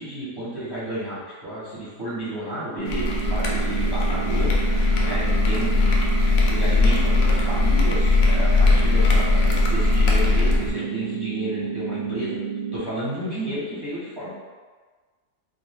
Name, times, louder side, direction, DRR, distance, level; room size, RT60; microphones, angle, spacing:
voice 1, 0.0-4.5 5.0-6.1 6.4-12.4 12.7-14.3, right 1 dB, 20° right, -12 dB, 1.1 m, -32 dB
sound 1, 2.8-12.8, right 6 dB, 15° left, 0.5 m, -31 dB
sound 2, 2.9-10.7, left 2 dB, 65° left, 0.8 m, -20 dB
2.7 x 2.4 x 3.6 m, 1.4 s
omnidirectional pair, 1.5 m